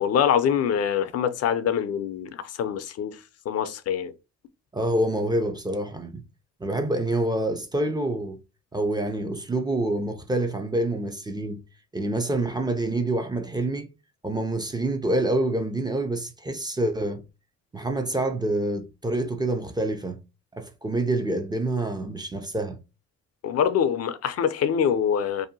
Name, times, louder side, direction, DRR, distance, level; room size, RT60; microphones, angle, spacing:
voice 1, 0.0-3.2 3.5-4.1 23.4-25.5, left 8 dB, 55° left, 0.4 m, -24 dB
voice 2, 4.7-6.2 6.6-8.4 8.7-11.6 11.9-13.9 14.2-17.2 17.7-20.2 20.5-22.8, right 1 dB, 15° right, 0.4 m, -27 dB
2.7 x 2.1 x 2.7 m
cardioid pair, 90°, 30 cm